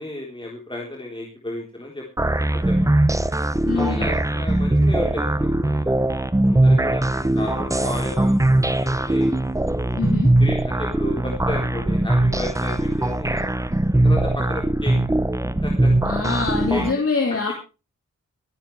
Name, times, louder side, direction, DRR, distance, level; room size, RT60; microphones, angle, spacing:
voice 1, 0.0-2.0 2.7-2.9 3.7-5.9 6.5-9.3 9.9-13.4 14.0-14.9 15.6-15.9 16.7-16.8, left 1 dB, 15° left, -1 dB, 3.8 m, -33 dB
sound 1, 2.2-16.9, right 1 dB, 10° right, 0.8 m, -20 dB
voice 2, 3.6-4.1 10.0-10.3 16.0-17.5, left 4 dB, 45° left, 0 dB, 3.7 m, -24 dB
25.5 x 9.1 x 3.3 m, 0.32 s
wide cardioid pair, 85°, 33 cm